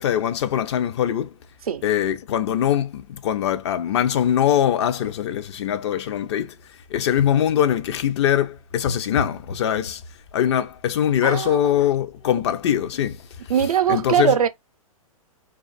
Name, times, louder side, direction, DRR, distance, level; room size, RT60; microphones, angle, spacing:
voice 1, 0.0-1.3 1.8-6.6 6.9-10.0 10.3-13.3 13.9-14.3, left 10 dB, 50° left, 0.5 m, -22 dB
voice 2, 11.2-11.6 13.5-14.5, right 8 dB, 80° right, 0.5 m, -20 dB
2.5 x 2.3 x 2.4 m
hypercardioid pair, 120°, 18 cm